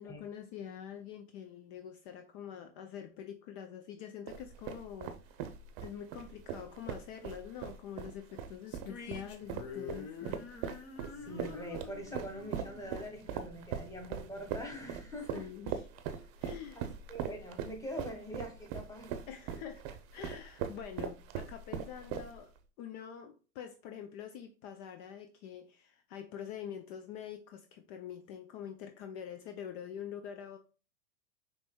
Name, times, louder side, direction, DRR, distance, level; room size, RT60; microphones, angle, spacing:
voice 1, 0.0-5.2 5.8-10.4 15.3-15.9 16.4-16.8 19.3-22.5 22.8-30.6, left 9 dB, 55° left, 0.6 m, -45 dB
sound 1, 4.3-22.6, right 8 dB, 50° right, 0.7 m, -40 dB
sound 2, 8.7-14.0, left 5 dB, 35° left, 1.0 m, -47 dB
voice 2, 11.1-15.5 16.1-16.3 16.7-19.2, equal, 10° left, 1.3 m, -44 dB
5.2 x 3.1 x 2.2 m
hypercardioid pair, 105°, 40 cm